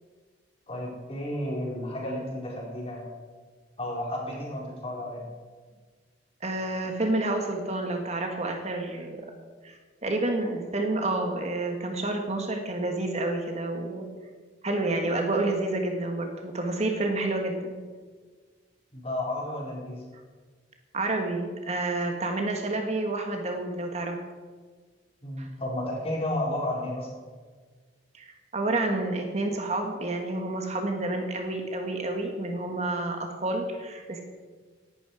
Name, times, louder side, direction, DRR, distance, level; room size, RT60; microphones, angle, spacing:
voice 1, 0.7-3.1 3.8-5.3 18.9-20.0 25.2-27.2, left 1 dB, 30° left, -3 dB, 4.4 m, -32 dB
voice 2, 6.4-9.3 9.6-14.0 14.6-17.8 20.9-24.2 25.4-25.5 28.1-34.2, right 2 dB, 35° right, 3 dB, 1.6 m, -29 dB
17.0 x 11.5 x 4.9 m, 1.5 s
head